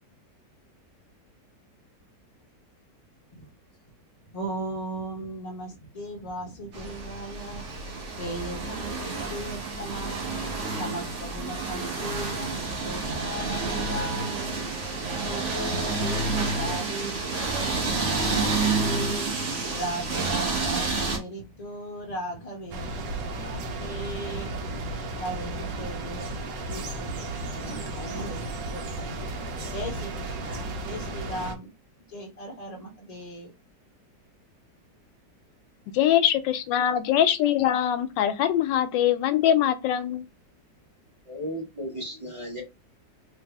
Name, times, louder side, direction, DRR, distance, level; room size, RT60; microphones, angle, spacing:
voice 1, 4.3-10.3 10.7-14.7 15.2-19.3 19.7-26.4 26.7-29.1 29.7-31.7 32.1-33.5, right 1 dB, 35° left, 0.6 m, -37 dB
sound 1, 6.7-21.2, right 3 dB, 45° right, 1.3 m, -29 dB
sound 2, 22.7-31.6, right 2 dB, 85° right, 1.5 m, -34 dB
voice 2, 36.0-40.2, left 10 dB, 90° left, 1.3 m, -23 dB
voice 3, 41.3-42.6, equal, 20° right, 1.4 m, -35 dB
3.2 x 3.1 x 3.5 m
omnidirectional pair, 1.9 m